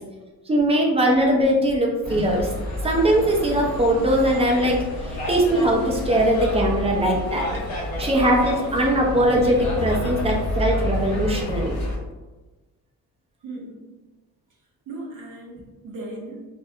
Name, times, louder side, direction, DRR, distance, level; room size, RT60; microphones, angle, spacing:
voice 1, 0.5-2.5 2.8-4.8 5.0-7.5 8.0-11.8, right 1 dB, 20° right, -1 dB, 0.3 m, -20 dB
sound 1, 2.0-12.0, left 1 dB, 75° left, 0.8 m, -29 dB
voice 2, 13.4-13.8 14.9-16.5, right 2 dB, 55° right, -2 dB, 0.7 m, -37 dB
2.3 x 2.1 x 2.6 m, 1.2 s
cardioid pair, 135°, 35 cm